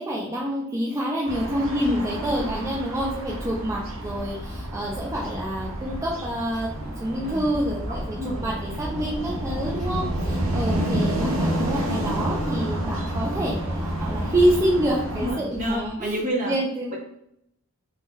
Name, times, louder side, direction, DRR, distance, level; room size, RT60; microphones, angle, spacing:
voice 1, 0.0-16.9, right 1 dB, 15° right, -4 dB, 0.4 m, -27 dB
sound 1, 1.3-15.3, right 1 dB, 70° right, 0.7 m, -29 dB
voice 2, 1.5-2.6 7.2-7.4 7.9-8.6 10.6-10.9 15.1-16.5, equal, 35° right, -1 dB, 0.8 m, -31 dB
sound 2, 3.3-16.3, equal, 20° left, 0.9 m, -41 dB
2.8 x 2.2 x 3.5 m, 0.75 s
head